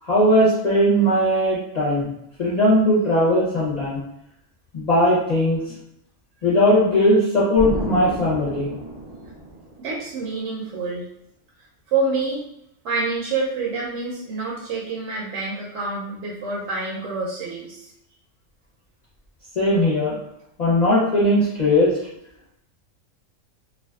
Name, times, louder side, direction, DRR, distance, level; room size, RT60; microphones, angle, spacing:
voice 1, 0.0-2.1 2.4-4.0 4.7-5.6 6.4-8.7 19.6-20.2 20.6-21.9, left 1 dB, 40° left, -9 dB, 0.6 m, -18 dB
Explosion, 7.6-10.2, right 1 dB, 45° right, 0.3 m, -31 dB
voice 2, 9.8-11.1 11.9-12.4 12.8-17.9, right 3 dB, 70° right, -4 dB, 0.8 m, -27 dB
2.5 x 2.3 x 2.3 m, 0.79 s
omnidirectional pair, 1.3 m